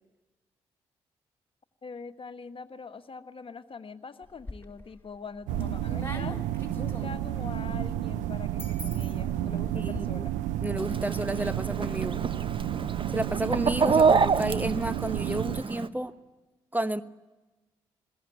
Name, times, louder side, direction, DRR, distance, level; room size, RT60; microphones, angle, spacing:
voice 1, 1.8-6.4 6.7-10.3, left 5 dB, 45° left, 9 dB, 1.6 m, -43 dB
sound 1, 4.2-4.9 5.4-10.0, left 1 dB, 20° left, 4.5 m, -43 dB
sound 2, 5.5-15.6, right 13 dB, 80° right, 0.7 m, -31 dB
voice 2, 9.7-10.2 10.6-12.2 13.1-16.1 16.7-17.0, right 1 dB, 15° right, 13 dB, 1.2 m, -31 dB
Chicken rooster, 10.8-15.9, right 5 dB, 45° right, 1.4 m, -27 dB
21.0 x 18.0 x 9.4 m, 1.1 s
hypercardioid pair, 40°, 13 cm